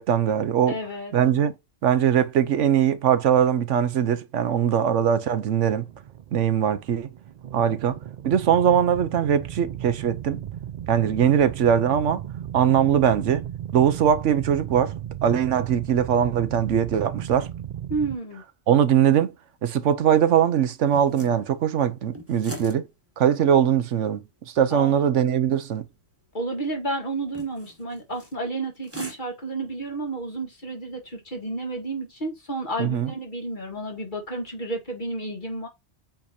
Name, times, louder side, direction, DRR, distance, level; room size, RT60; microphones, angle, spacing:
voice 1, 0.0-0.8 1.1-1.5 1.8-5.9 6.3-7.1 7.5-8.0 8.2-10.4 10.9-12.2 12.5-13.5 13.7-15.0 15.2-17.5 18.7-19.3 19.6-22.8 23.2-25.9 32.8-33.1, right 9 dB, 85° right, 1.1 m, -21 dB
voice 2, 0.7-1.1 17.9-18.4 24.7-25.2 26.3-35.7, right 2 dB, 40° left, 2.0 m, -31 dB
sound 1, 5.8-18.2, right 10 dB, 60° right, 0.4 m, -36 dB
sound 2, 19.3-35.0, equal, 10° right, 1.4 m, -48 dB
7.8 x 2.9 x 4.2 m
omnidirectional pair, 1.2 m